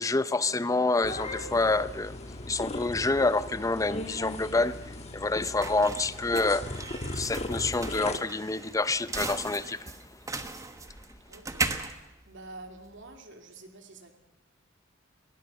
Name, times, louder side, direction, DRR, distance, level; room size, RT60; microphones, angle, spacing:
voice 1, 0.0-10.0, left 3 dB, 15° left, 0.6 m, -28 dB
sound 1, 1.0-8.2, left 1 dB, 35° left, 1.3 m, -37 dB
sound 2, 4.1-13.1, right 3 dB, 15° right, 1.2 m, -38 dB
voice 2, 11.2-14.2, right 2 dB, 65° right, 2.6 m, -48 dB
22.5 x 17.5 x 6.8 m
head